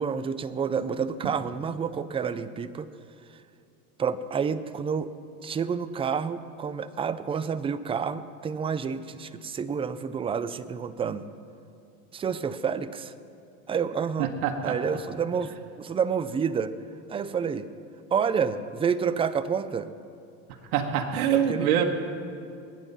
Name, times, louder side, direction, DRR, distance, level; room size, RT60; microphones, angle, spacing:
voice 1, 0.0-2.9 4.0-5.1 5.4-11.3 12.1-13.1 13.7-14.3 14.6-16.7 17.1-17.7 18.1-19.9 21.3-21.7, right 6 dB, 15° right, 13 dB, 0.4 m, -29 dB
voice 2, 14.2-14.8 20.7-21.8, right 9 dB, 75° right, 3 dB, 1.5 m, -25 dB
20.5 x 9.2 x 5.6 m, 2.5 s
supercardioid pair, 110°, 43 cm